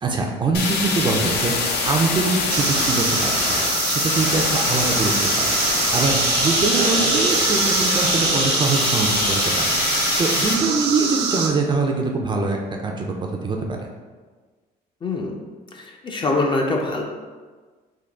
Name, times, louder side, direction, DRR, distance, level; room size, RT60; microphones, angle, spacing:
voice 1, 0.0-13.9, right 3 dB, 30° right, 1 dB, 0.4 m, -24 dB
sound 1, 0.5-10.5, left 3 dB, 75° left, 0.6 m, -23 dB
sound 2, 2.5-11.5, right 5 dB, 85° right, 0.5 m, -24 dB
voice 2, 6.8-7.1 15.0-15.3 15.7-17.0, left 2 dB, 30° left, 1 dB, 0.5 m, -24 dB
3.8 x 2.3 x 3.4 m, 1.4 s
cardioid pair, 110°, 17 cm